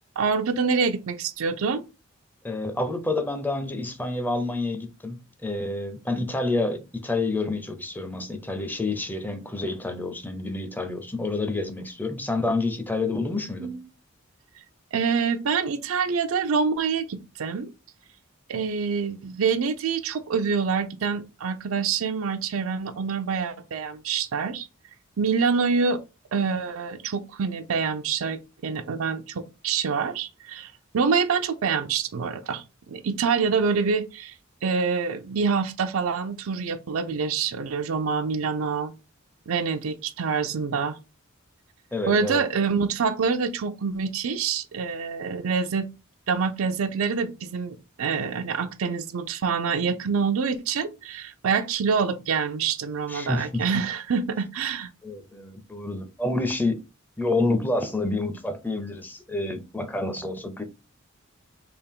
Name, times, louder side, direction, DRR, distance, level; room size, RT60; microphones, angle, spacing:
voice 1, 0.2-1.8 13.6-13.8 14.9-17.7 18.5-24.7 25.2-26.0 26.3-34.3 34.6-38.9 39.5-41.0 42.1-45.9 46.3-54.9, right 5 dB, 90° right, 0.5 m, -26 dB
voice 2, 2.4-13.7 41.9-42.4 53.1-53.8 55.0-56.8 57.2-60.6, left 2 dB, 10° left, 0.4 m, -28 dB
3.4 x 2.5 x 3.5 m
head